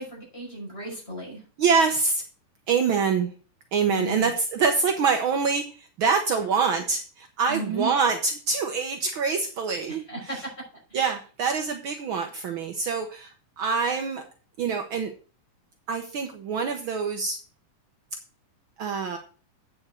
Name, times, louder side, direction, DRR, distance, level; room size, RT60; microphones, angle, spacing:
voice 1, 0.0-1.4 3.9-4.3 7.5-7.9 9.9-10.4 10.9-11.0, right 3 dB, 20° left, -3 dB, 6.1 m, -34 dB
voice 2, 1.6-2.2 2.7-3.3 3.7-10.4 10.9-14.2 14.6-15.1 15.9-17.4 18.8-19.2, right 5 dB, 80° right, 5 dB, 1.1 m, -25 dB
8.7 x 7.0 x 6.2 m, 0.37 s
omnidirectional pair, 3.7 m